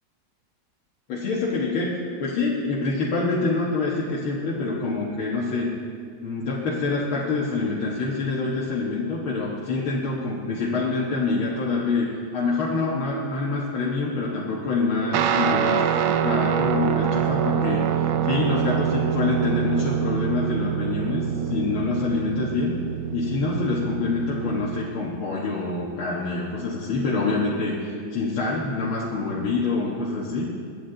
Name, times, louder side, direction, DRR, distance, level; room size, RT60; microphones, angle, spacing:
voice 1, 1.1-5.7 6.2-12.1 12.3-22.7 23.1-30.5, left 3 dB, 85° left, -5 dB, 2.3 m, -26 dB
Guitar, 15.1-24.9, right 9 dB, 80° right, 1.6 m, -25 dB
21.5 x 9.8 x 3.9 m, 2.2 s
omnidirectional pair, 2.2 m